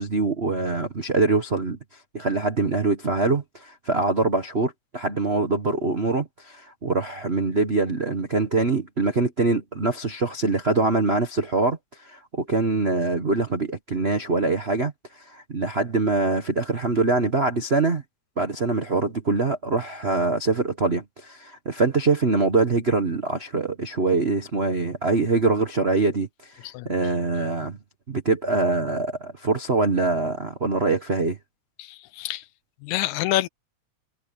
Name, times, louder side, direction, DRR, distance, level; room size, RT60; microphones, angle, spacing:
voice 1, 0.0-18.0 18.4-27.8 28.1-31.4, right 3 dB, 85° right, 0.5 m, -24 dB
voice 2, 31.8-32.4 32.8-33.5, left 15 dB, 80° left, 1.9 m, -27 dB
omnidirectional pair, 3.5 m